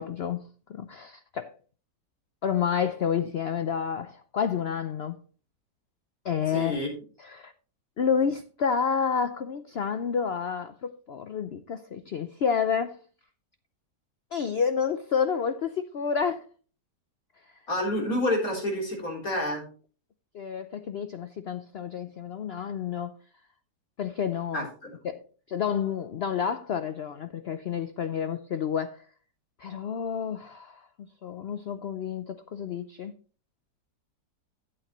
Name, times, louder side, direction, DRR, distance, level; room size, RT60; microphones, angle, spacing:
voice 1, 0.0-1.5 2.4-5.2 6.2-6.8 7.2-7.5 8.0-13.0 14.3-16.5 17.4-17.5 20.3-23.1 24.0-24.7 25.0-25.2 25.5-29.0 29.6-30.9 31.2-33.1, left 7 dB, 85° left, 0.5 m, -29 dB
voice 2, 6.5-6.9 17.7-19.6 24.5-24.9, left 1 dB, 55° left, 4.1 m, -28 dB
12.0 x 8.6 x 3.0 m
omnidirectional pair, 1.8 m